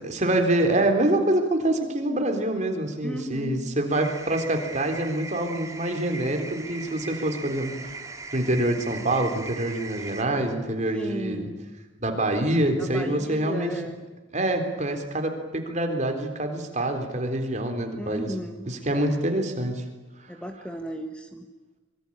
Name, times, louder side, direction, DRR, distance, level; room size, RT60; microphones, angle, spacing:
voice 1, 0.0-11.5 12.0-13.7 14.3-18.3 18.7-19.8, right 1 dB, 35° right, 5 dB, 3.8 m, -26 dB
voice 2, 3.0-3.8 10.9-11.6 12.8-14.0 18.0-19.2 20.3-21.5, equal, 5° left, 5 dB, 1.5 m, -36 dB
sound 1, 3.9-10.2, right 3 dB, 15° right, 2.7 m, -40 dB
25.5 x 23.0 x 8.8 m, 1.2 s
head